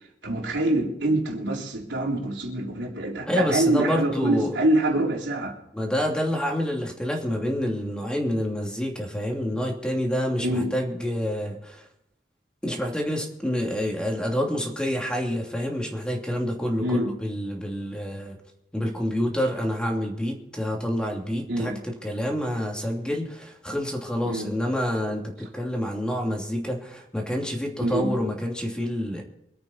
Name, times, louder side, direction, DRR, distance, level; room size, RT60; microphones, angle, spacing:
voice 1, 0.2-5.6 10.4-10.7 16.8-17.1 21.5-21.8 24.3-24.5 27.8-28.1, right 1 dB, 85° right, -1 dB, 3.9 m, -25 dB
voice 2, 3.3-4.6 5.7-11.8 12.6-18.4 18.7-29.2, equal, 5° left, 0 dB, 2.8 m, -28 dB
25.0 x 8.8 x 4.4 m, 0.81 s
head